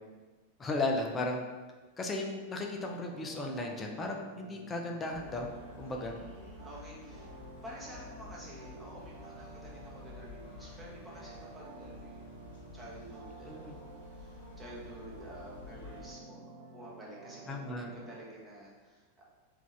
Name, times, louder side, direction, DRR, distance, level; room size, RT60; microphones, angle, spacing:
voice 1, 0.6-1.5 2.0-5.5 5.8-6.1 13.5-13.7 17.5-17.9, left 2 dB, 20° left, 2 dB, 0.5 m, -35 dB
sound 1, 2.9-18.2, right 3 dB, 45° right, 0.7 m, -51 dB
sound 2, 5.1-16.1, left 4 dB, 55° left, 0.9 m, -51 dB
voice 2, 5.9-7.3 7.6-12.4 12.7-19.2, right 1 dB, 10° right, -6 dB, 1.0 m, -50 dB
3.4 x 2.5 x 3.2 m, 1.3 s
figure-of-eight pair, 90°, 0 cm